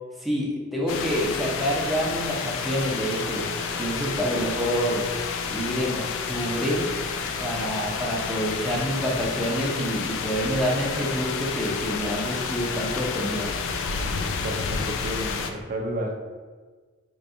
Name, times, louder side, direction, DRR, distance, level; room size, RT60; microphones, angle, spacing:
voice 1, 0.2-5.0 5.5-6.8 7.4-13.5, equal, ahead, -4 dB, 0.6 m, -27 dB
sound 1, 0.9-15.5, left 5 dB, 65° left, 0.3 m, -30 dB
voice 2, 14.4-16.1, equal, 40° right, 1 dB, 0.5 m, -31 dB
4.5 x 2.6 x 2.6 m, 1.4 s
head